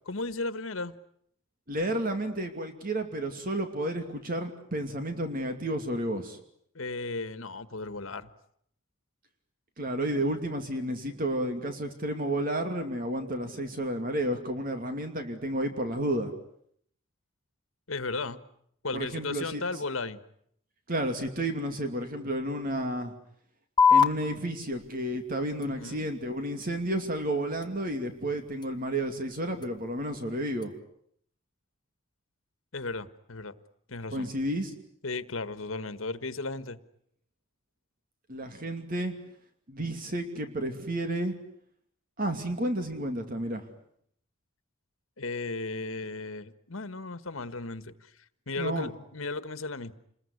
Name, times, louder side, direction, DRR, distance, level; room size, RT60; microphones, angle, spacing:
voice 1, 0.1-0.9 6.7-8.3 17.9-18.4 18.8-20.2 25.7-26.1 32.7-33.5 33.9-34.3 35.0-36.8 45.2-47.9 48.5-49.9, left 3 dB, 85° left, 12 dB, 1.5 m, -35 dB
voice 2, 1.7-6.4 9.8-16.3 18.9-19.6 20.9-23.1 23.9-30.7 34.1-34.7 38.3-39.1 39.7-41.3 42.2-43.7 48.6-48.9, right 1 dB, 45° right, 6 dB, 2.6 m, -31 dB
sound 1, 23.8-30.8, left 6 dB, 20° left, 1.4 m, -30 dB
28.0 x 21.5 x 9.7 m, 0.70 s
head